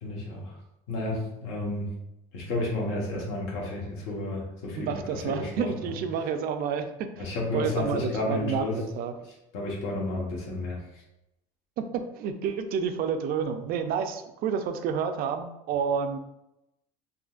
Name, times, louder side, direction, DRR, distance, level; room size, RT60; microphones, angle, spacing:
voice 1, 0.0-0.6 0.9-1.9 2.3-5.7 7.2-8.8 9.5-10.8, left 2 dB, 90° left, -2 dB, 1.2 m, -31 dB
voice 2, 4.8-7.3 7.5-9.1 12.2-16.2, right 6 dB, 55° right, 8 dB, 0.4 m, -29 dB
3.7 x 2.7 x 2.4 m, 0.88 s
cardioid pair, 140°, 18 cm